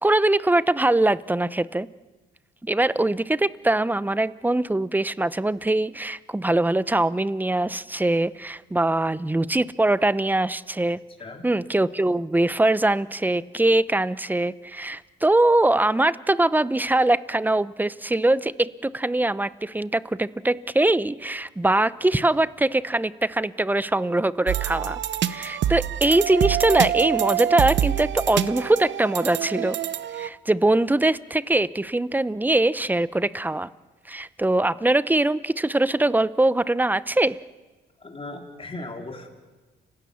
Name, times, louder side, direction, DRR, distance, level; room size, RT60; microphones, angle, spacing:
voice 1, 0.0-1.9 2.6-11.0 11.4-25.0 25.3-29.8 30.1-33.7 34.1-37.4, right 2 dB, 10° right, 17 dB, 0.7 m, -22 dB
sound 1, 24.5-30.3, right 11 dB, 65° right, 0.9 m, -26 dB
voice 2, 38.0-39.3, left 2 dB, 30° left, 2 dB, 4.0 m, -37 dB
29.5 x 17.0 x 7.0 m, 1.3 s
cardioid pair, 90°, 20 cm